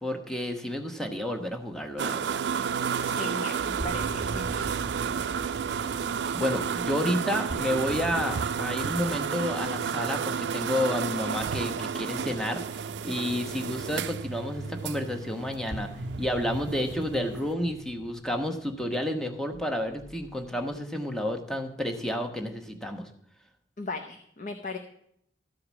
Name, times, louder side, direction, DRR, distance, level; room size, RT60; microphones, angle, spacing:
voice 1, 0.0-2.4 6.3-15.9 16.2-23.1, left 1 dB, 5° left, 3 dB, 1.1 m, -30 dB
sound 1, 2.0-17.5, right 7 dB, 75° right, 0.4 m, -31 dB
voice 2, 3.0-4.7 23.8-24.8, left 2 dB, 45° left, 7 dB, 0.7 m, -37 dB
sound 2, 3.6-13.7 15.7-20.8, right 1 dB, 25° left, 1.8 m, -42 dB
13.0 x 4.9 x 7.2 m, 0.70 s
head